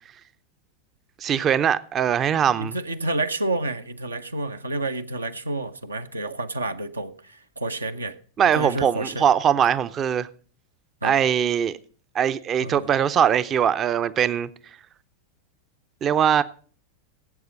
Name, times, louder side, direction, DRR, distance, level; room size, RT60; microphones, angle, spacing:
voice 1, 1.2-2.8 8.4-10.3 11.0-11.8 12.1-14.5 16.0-16.4, right 8 dB, 30° right, 0.5 m, -21 dB
voice 2, 2.6-8.2 8.5-9.2 11.0-11.2 12.6-12.9, right 2 dB, 80° right, 0.7 m, -29 dB
17.0 x 7.9 x 5.0 m
figure-of-eight pair, 90°, 0 cm